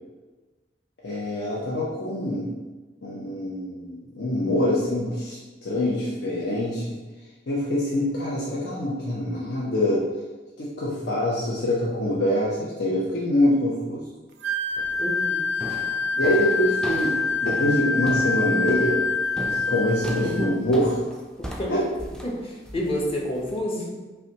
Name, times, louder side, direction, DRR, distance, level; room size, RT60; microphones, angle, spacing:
voice 1, 1.0-2.5 3.0-7.0 7.5-10.1 10.6-14.0 16.2-19.0 19.4-20.9 21.7-21.8, left 1 dB, 75° left, -6 dB, 0.7 m, -25 dB
Wind instrument woodwind instrument, 14.4-20.6, left 3 dB, 75° right, 0.4 m, -26 dB
sound 1, 14.8-15.1 15.6-23.6, equal, 5° left, 0.3 m, -37 dB
voice 2, 15.0-15.4 20.2-20.5 21.6-21.7 22.2-24.0, left 1 dB, 35° left, -2 dB, 0.7 m, -29 dB
5.5 x 2.2 x 2.8 m, 1.2 s
head